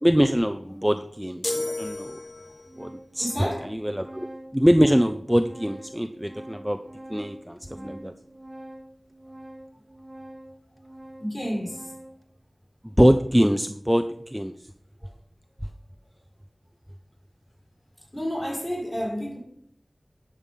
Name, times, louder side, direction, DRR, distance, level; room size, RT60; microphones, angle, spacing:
voice 1, 0.0-2.2 2.8-4.3 4.5-6.8 7.1-8.1 12.8-14.7, equal, 5° right, 0.6 m, -23 dB
Organ, 1.0-1.1 1.9-2.0 2.4-12.3, right 1 dB, 30° right, 1.0 m, -45 dB
sound 1, 1.4-2.8, left 2 dB, 55° left, 1.0 m, -32 dB
voice 2, 3.2-3.7 7.7-8.1 11.2-11.9 15.0-15.1 18.1-19.4, equal, 25° left, 5.5 m, -31 dB
11.0 x 6.8 x 5.5 m
wide cardioid pair, 55°, 0 cm